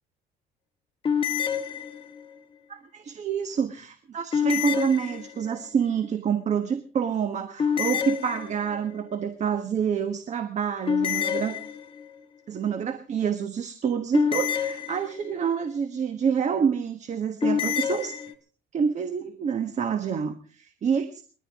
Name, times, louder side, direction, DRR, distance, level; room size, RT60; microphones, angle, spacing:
sound 1, 1.0-2.3 4.3-5.6 7.6-8.9 10.9-12.2 14.1-15.4 17.4-18.3, left 8 dB, 30° left, 1.8 m, -28 dB
voice 1, 2.7-11.6 12.5-18.2 18.7-21.2, right 7 dB, 45° right, 9 dB, 1.4 m, -27 dB
29.5 x 12.0 x 3.6 m, 0.42 s
cardioid pair, 110°, 17 cm